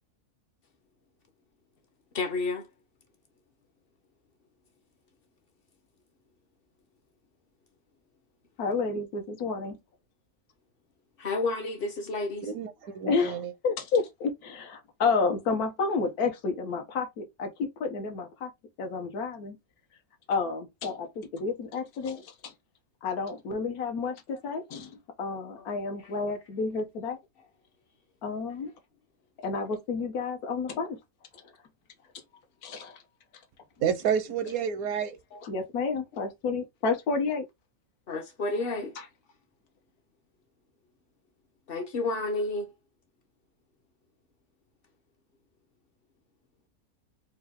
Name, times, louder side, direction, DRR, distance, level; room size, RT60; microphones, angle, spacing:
voice 1, 2.1-2.7 11.2-12.5 25.6-25.7 35.3-35.4 38.1-38.9 41.7-42.7, left 3 dB, 50° left, 0.8 m, -30 dB
voice 2, 8.6-9.8 13.1-18.5 18.8-19.6 20.3-22.5 23.0-27.2 28.2-28.7 29.4-31.0 32.6-33.0 35.4-37.4, left 4 dB, 85° left, 1.3 m, -30 dB
voice 3, 12.4-13.5 33.8-35.2, right 7 dB, 80° right, 1.1 m, -29 dB
4.4 x 2.3 x 3.5 m
omnidirectional pair, 1.5 m